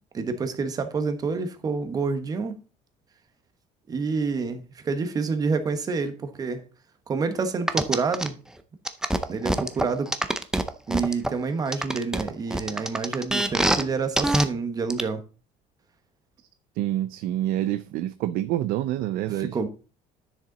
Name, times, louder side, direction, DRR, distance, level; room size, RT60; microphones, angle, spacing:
voice 1, 0.1-2.5 3.9-6.6 7.1-8.4 9.3-10.1 10.9-15.2 19.3-19.7, right 4 dB, 25° right, 1.1 m, -28 dB
sound 1, 7.7-8.3 8.8-11.3 11.7-13.8 14.2-14.4 14.9-15.0, right 1 dB, 5° right, 0.5 m, -24 dB
voice 2, 16.8-19.5, right 13 dB, 75° right, 0.5 m, -27 dB
10.0 x 6.6 x 4.0 m
cardioid pair, 165°, 15 cm